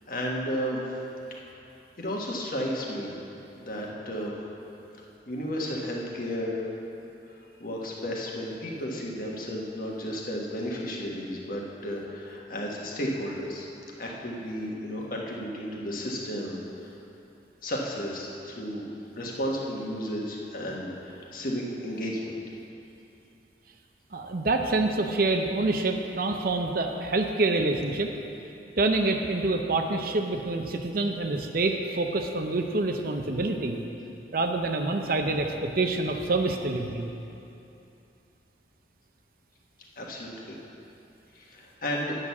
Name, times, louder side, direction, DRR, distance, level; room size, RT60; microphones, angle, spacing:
voice 1, 0.1-0.8 2.0-3.1 3.5-4.3 5.3-6.7 7.6-13.7 14.0-16.6 17.6-18.8 19.2-22.4 40.0-40.6 41.3-42.1, equal, 50° left, -2 dB, 1.5 m, -33 dB
voice 2, 24.1-28.1 28.8-33.8 34.3-37.1, right 2 dB, 55° right, 4 dB, 0.7 m, -26 dB
9.8 x 6.5 x 7.1 m, 2.8 s
head